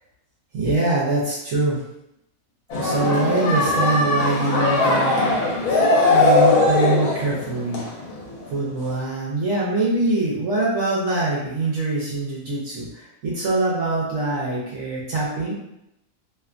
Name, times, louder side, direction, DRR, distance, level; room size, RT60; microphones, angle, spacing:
voice 1, 0.5-1.8 2.8-5.3 6.1-7.8 8.5-15.5, right 2 dB, 70° right, -6 dB, 1.0 m, -23 dB
sound 1, 2.7-8.5 8.9-9.0, left 2 dB, 80° left, 1.2 m, -20 dB
2.8 x 2.2 x 2.4 m, 0.83 s
omnidirectional pair, 1.5 m